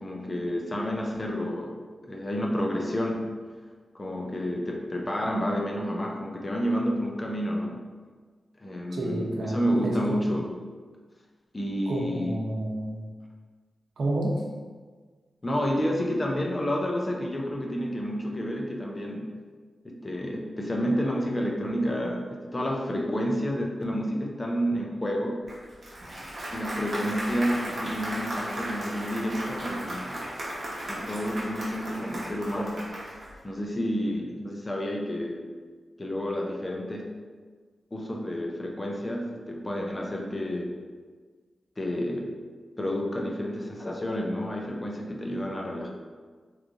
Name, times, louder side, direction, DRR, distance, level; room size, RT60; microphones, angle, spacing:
voice 1, 0.0-1.8 2.1-3.3 3.9-7.8 8.6-10.5 11.5-12.4 15.4-19.3 19.8-25.5 26.5-30.2 30.9-32.8 33.4-35.5 36.0-37.1 37.9-40.7 41.8-42.4 42.8-45.9, equal, 25° left, 0 dB, 0.4 m, -30 dB
voice 2, 8.9-10.2 11.9-13.0 14.0-14.4, right 1 dB, 85° right, -2 dB, 0.7 m, -30 dB
Applause, 25.5-33.4, right 1 dB, 60° right, 1.0 m, -35 dB
3.5 x 3.0 x 2.5 m, 1.5 s
wide cardioid pair, 130°, 0 cm